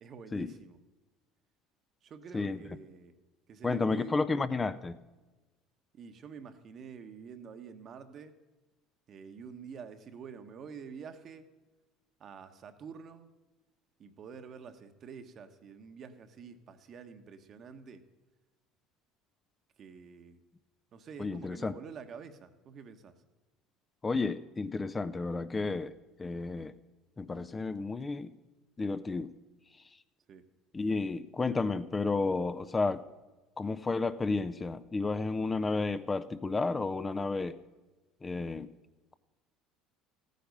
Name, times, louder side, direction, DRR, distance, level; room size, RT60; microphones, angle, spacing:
voice 1, 0.0-0.8 2.0-3.1 3.5-4.2 5.9-8.4 9.1-11.5 12.2-13.3 14.0-18.0 19.8-20.4 20.9-23.1 30.3-30.4, right 6 dB, 45° right, 9 dB, 1.1 m, -48 dB
voice 2, 3.6-5.0 21.2-21.7 24.0-25.9 26.2-26.7 27.2-28.3 28.8-29.3 30.7-33.0 33.6-37.5 38.2-38.7, left 3 dB, 20° left, 13 dB, 0.5 m, -32 dB
14.5 x 9.3 x 5.4 m, 1.2 s
supercardioid pair, 85°, 0 cm